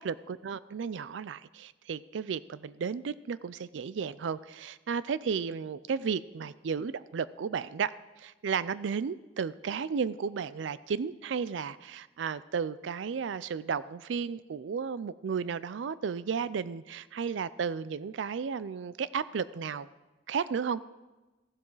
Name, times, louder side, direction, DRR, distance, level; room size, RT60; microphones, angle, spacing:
voice 1, 0.0-19.9 20.3-20.8, right 6 dB, 70° right, 17 dB, 0.4 m, -33 dB
15.0 x 7.6 x 4.0 m, 1.1 s
head